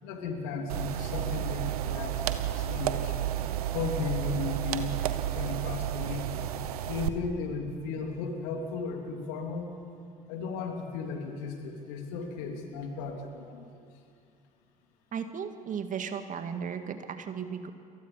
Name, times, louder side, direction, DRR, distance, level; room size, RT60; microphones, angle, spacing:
voice 1, 0.0-3.1 3.7-5.0 5.3-6.2 6.9-9.7 10.3-13.8, left 4 dB, 70° left, 3 dB, 3.2 m, -35 dB
sound 1, 0.7-7.1, right 11 dB, 80° right, 1.1 m, -32 dB
voice 2, 15.1-17.7, right 7 dB, 45° right, 8 dB, 2.0 m, -35 dB
29.5 x 23.5 x 5.7 m, 2.4 s
figure-of-eight pair, 60°, 19 cm